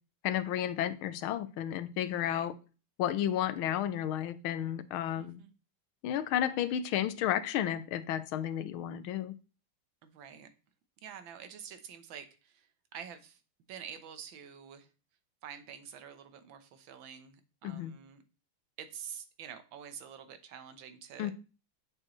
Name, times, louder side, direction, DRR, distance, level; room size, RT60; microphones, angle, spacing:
voice 1, 0.2-2.5 3.0-5.4 6.0-9.3 17.6-17.9 21.2-21.3, left 11 dB, 90° left, 1.5 m, -32 dB
voice 2, 2.1-2.5 5.2-5.5 10.0-10.5 11.0-12.7 12.9-13.4 13.7-14.9 15.4-18.2 18.8-21.3, right 8 dB, 75° right, 1.6 m, -47 dB
7.6 x 6.5 x 3.1 m
omnidirectional pair, 2.2 m